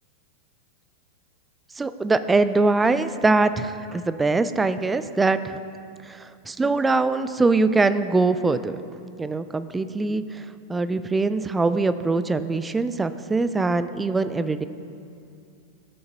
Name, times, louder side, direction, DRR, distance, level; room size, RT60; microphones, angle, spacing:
voice 1, 1.8-5.6 6.0-8.8 9.2-14.7, right 3 dB, 10° right, 12 dB, 0.3 m, -23 dB
16.0 x 6.4 x 2.9 m, 2.5 s
figure-of-eight pair, 90°, 0 cm